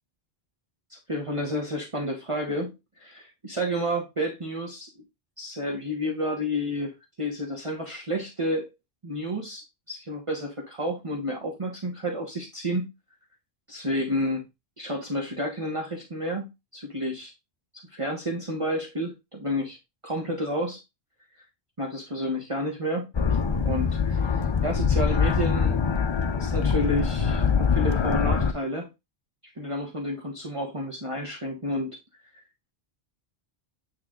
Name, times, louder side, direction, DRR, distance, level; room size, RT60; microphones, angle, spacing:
voice 1, 0.9-2.7 3.0-4.9 5.4-8.7 9.0-12.9 13.7-14.5 14.8-17.3 17.9-19.8 20.0-20.8 21.8-23.1 23.6-25.8 26.4-28.9 29.6-31.9 32.3-32.4, equal, 30° right, 1.2 m, -30 dB
sound 1, 23.1-28.5, left 6 dB, 35° left, 0.5 m, -24 dB
8.8 x 3.3 x 3.7 m
omnidirectional pair, 1.1 m